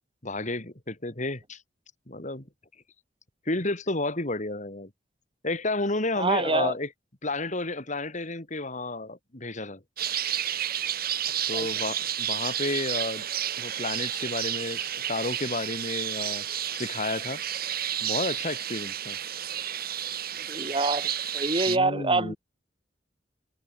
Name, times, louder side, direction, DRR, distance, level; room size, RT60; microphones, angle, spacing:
voice 1, 0.2-1.6 2.1-2.5 3.5-4.9 5.4-6.9 7.2-9.8 11.5-13.2 13.6-16.4 16.7-17.4 18.0-19.2 21.7-22.4, left 2 dB, 40° left, 3.8 m, -31 dB
voice 2, 6.2-6.7 11.5-11.7 20.5-21.1 21.3-22.4, right 3 dB, 30° right, 4.6 m, -26 dB
sound 1, 10.0-21.8, right 10 dB, 55° right, 3.6 m, -31 dB
head